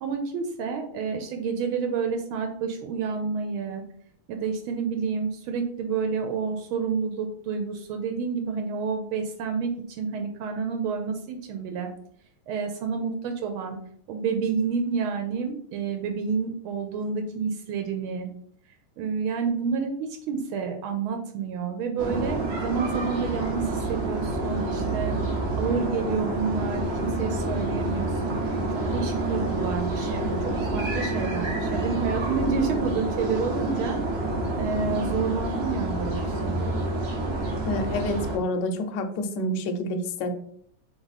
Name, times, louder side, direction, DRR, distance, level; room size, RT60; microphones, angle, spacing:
voice 1, 0.0-3.8 4.3-11.9 12.5-13.8 14.1-18.3 19.0-25.1 25.6-28.6 28.9-30.4 30.7-34.0 34.5-36.6, right 5 dB, 85° right, 4 dB, 1.4 m, -29 dB
sound 1, 22.0-38.4, right 2 dB, 55° right, 0.7 m, -28 dB
voice 2, 37.7-40.3, left 1 dB, 70° left, 6 dB, 1.1 m, -28 dB
3.6 x 3.4 x 4.0 m, 0.63 s
omnidirectional pair, 2.3 m